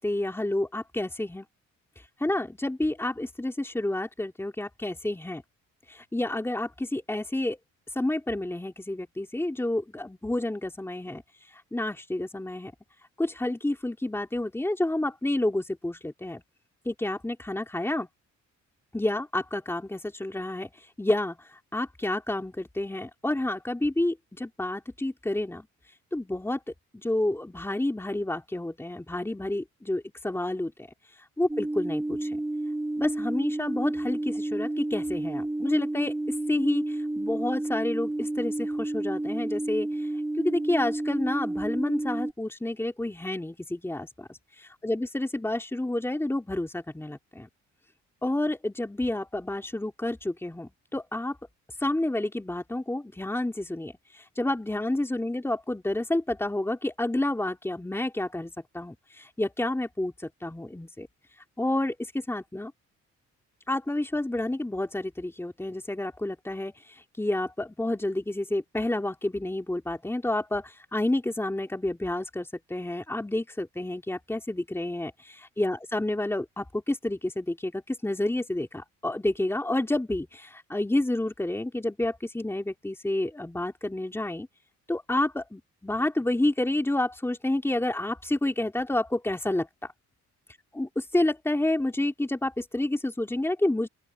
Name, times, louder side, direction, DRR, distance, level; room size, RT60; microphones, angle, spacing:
voice 1, 0.0-1.5 2.2-5.4 5.9-7.6 7.9-11.2 11.5-12.7 13.2-16.4 16.8-18.1 18.9-25.7 26.1-26.6 26.9-30.9 31.4-32.4 33.0-36.2 36.5-40.1 40.4-47.5 48.2-51.4 51.8-61.1 61.6-62.7 63.7-84.5 84.9-89.9 90.7-93.9, left 1 dB, 10° left, 2.9 m, -29 dB
sound 1, 31.5-42.3, right 1 dB, 10° right, 1.7 m, -31 dB
open air
cardioid pair, 90°, 30 cm